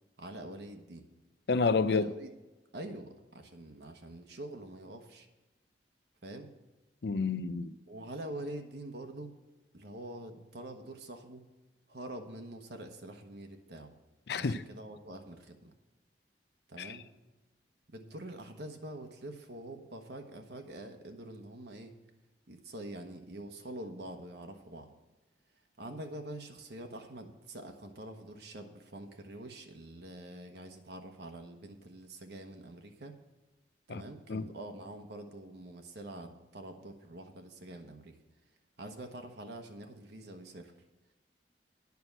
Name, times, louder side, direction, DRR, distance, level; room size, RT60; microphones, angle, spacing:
voice 1, 0.2-1.1 1.9-2.3 2.7-5.3 6.2-6.5 7.9-9.4 9.7-11.4 11.9-13.9 14.3-15.7 16.7-17.0 17.9-21.9 22.5-24.9 25.8-33.2 33.9-38.1 38.8-40.7, right 1 dB, 65° right, 1.1 m, -45 dB
voice 2, 1.5-2.1 7.0-7.7 14.3-14.6 16.8-17.0 33.9-34.0 34.3-34.5, left 4 dB, 65° left, 0.5 m, -29 dB
9.5 x 5.9 x 8.0 m
head